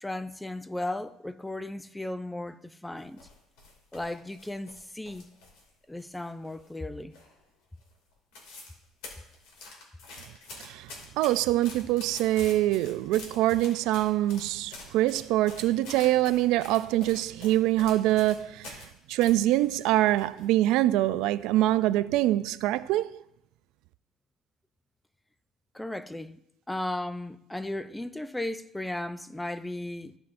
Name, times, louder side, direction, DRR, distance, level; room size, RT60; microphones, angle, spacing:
voice 1, 0.0-3.3 3.9-5.3 5.9-7.2 25.7-26.4 26.7-30.2, left 1 dB, 5° left, 0.4 m, -35 dB
sound 1, 3.0-5.7 6.0-6.8 7.1-7.5 7.8-7.9 8.1-8.8 9.0-18.9 19.2-20.4 20.8-20.9 21.5-21.9 22.3-22.5, left 3 dB, 85° left, 2.4 m, -46 dB
voice 2, 11.2-18.8 19.1-23.2, right 15 dB, 75° right, 0.3 m, -24 dB
15.0 x 5.7 x 2.6 m
cardioid pair, 130°, 0 cm